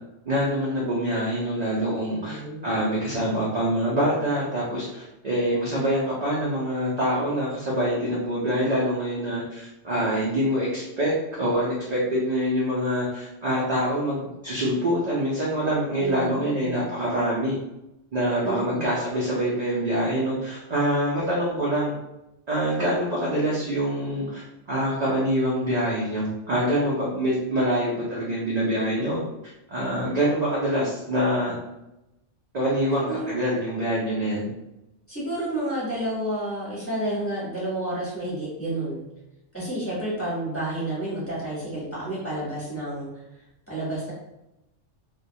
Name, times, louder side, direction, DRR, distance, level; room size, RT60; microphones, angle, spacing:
voice 1, 0.3-11.1 11.4-17.6 18.1-21.9 22.5-29.2 29.7-31.5 32.5-34.5, equal, 55° right, -6 dB, 0.5 m, -25 dB
voice 2, 2.1-2.6 16.0-16.8 18.4-19.0 33.0-33.3 35.1-39.0 39.5-43.2 43.7-44.1, right 1 dB, 15° left, -9 dB, 0.8 m, -30 dB
2.2 x 2.1 x 2.7 m, 0.92 s
omnidirectional pair, 1.3 m